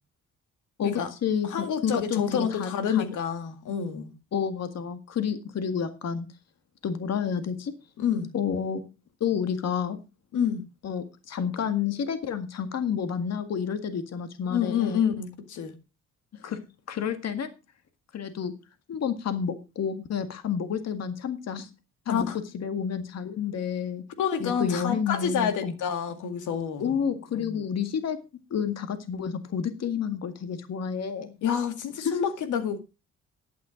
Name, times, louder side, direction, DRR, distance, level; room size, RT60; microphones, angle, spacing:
voice 1, 0.8-3.0 4.3-6.3 6.8-7.7 8.3-8.8 9.2-10.0 10.8-15.0 16.4-16.6 16.9-17.5 18.1-18.5 18.9-21.7 22.1-22.3 22.5-24.0 24.4-25.7 26.8-28.2 28.5-31.4 32.0-32.2, left 7 dB, 60° left, 1.9 m, -30 dB
voice 2, 1.4-4.1 8.0-8.3 10.3-10.6 14.5-15.8 22.1-22.4 24.2-26.9 31.4-32.8, left 8 dB, 80° left, 2.1 m, -28 dB
11.0 x 9.3 x 5.1 m
cardioid pair, 90°, 30 cm